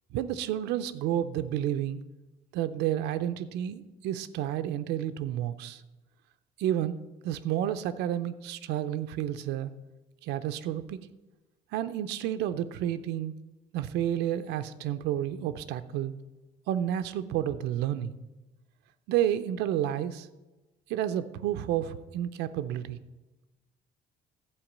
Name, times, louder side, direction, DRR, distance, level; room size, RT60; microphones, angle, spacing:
voice 1, 0.1-2.0 2.5-5.8 6.6-9.7 10.2-11.0 11.7-13.3 13.7-16.1 16.7-18.1 19.1-20.3 20.9-23.0, right 11 dB, 90° right, 11 dB, 0.5 m, -30 dB
12.0 x 4.6 x 7.2 m, 1.1 s
cardioid pair, 110°, 17 cm